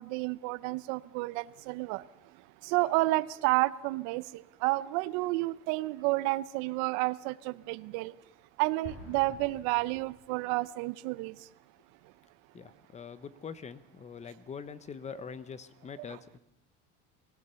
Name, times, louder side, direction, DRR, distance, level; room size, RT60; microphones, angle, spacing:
voice 1, 0.0-2.0 2.6-8.1 8.6-11.4, right 20 dB, 75° right, 17 dB, 0.8 m, -30 dB
Explosion, 8.8-10.7, left 4 dB, 50° left, 7.9 m, -49 dB
voice 2, 12.5-16.4, left 6 dB, 25° left, 15 dB, 0.9 m, -44 dB
22.5 x 16.5 x 6.9 m, 0.88 s
cardioid pair, 140°, 30 cm